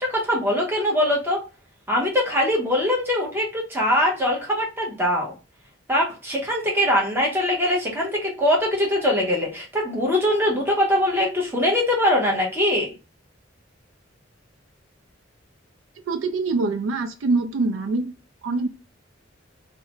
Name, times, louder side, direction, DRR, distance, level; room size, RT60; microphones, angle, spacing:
voice 1, 0.0-1.4 1.9-5.3 5.9-12.9, left 1 dB, 10° right, -2 dB, 0.8 m, -22 dB
voice 2, 16.1-18.1 18.4-18.7, right 3 dB, 80° right, 7 dB, 0.4 m, -24 dB
2.4 x 2.1 x 2.9 m, 0.30 s
head